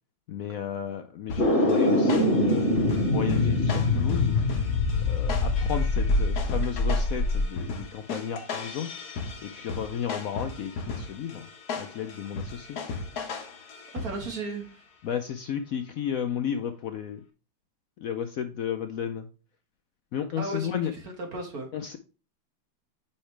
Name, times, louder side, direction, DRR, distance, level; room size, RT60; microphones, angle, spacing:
voice 1, 0.3-2.7 3.1-4.3 5.1-8.9 9.4-11.5 11.8-12.8 15.0-17.2 18.0-19.3 20.1-20.9 21.7-22.0, left 8 dB, 80° left, 0.7 m, -33 dB
sound 1, 1.3-14.5, left 4 dB, 55° left, 1.6 m, -37 dB
sound 2, 1.4-7.4, left 2 dB, 35° left, 2.7 m, -24 dB
voice 2, 13.9-14.8 20.4-21.7, right 2 dB, 50° right, 1.9 m, -35 dB
8.6 x 5.6 x 3.3 m
omnidirectional pair, 2.1 m